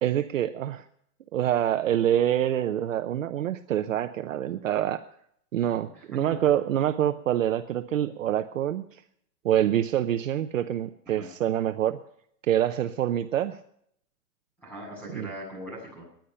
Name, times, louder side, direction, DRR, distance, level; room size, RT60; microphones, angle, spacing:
voice 1, 0.0-0.8 1.3-5.0 5.5-9.0 9.4-12.0 12.5-13.6 15.1-15.3, right 11 dB, 50° right, 9 dB, 0.8 m, -26 dB
voice 2, 5.9-6.3 11.1-11.3 14.6-16.0, right 1 dB, 5° left, -4 dB, 7.3 m, -40 dB
20.0 x 10.5 x 5.6 m, 0.68 s
hypercardioid pair, 175°, 49 cm